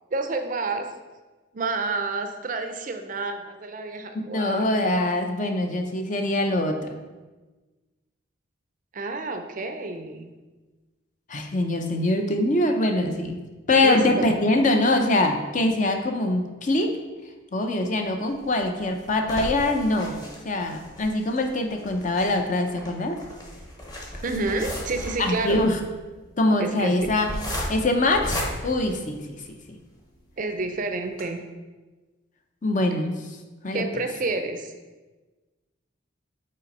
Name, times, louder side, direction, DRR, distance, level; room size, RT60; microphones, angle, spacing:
voice 1, 0.1-0.9 1.5-4.7 8.9-10.3 13.8-14.3 24.2-25.7 26.6-27.1 30.4-31.4 32.9-33.0 33.7-34.7, right 3 dB, 40° right, 6 dB, 0.5 m, -29 dB
voice 2, 4.3-6.8 11.3-13.4 13.7-17.0 17.5-20.2 20.4-23.1 25.2-25.8 26.4-27.3 27.7-29.2 29.5-29.6 32.6-33.2 33.6-33.8, left 2 dB, 40° left, 5 dB, 0.6 m, -23 dB
sound 1, 18.3-29.7 30.2-30.3 30.6-30.7 31.1-31.2, equal, 20° left, 0.9 m, -35 dB
5.4 x 4.0 x 5.3 m, 1.2 s
head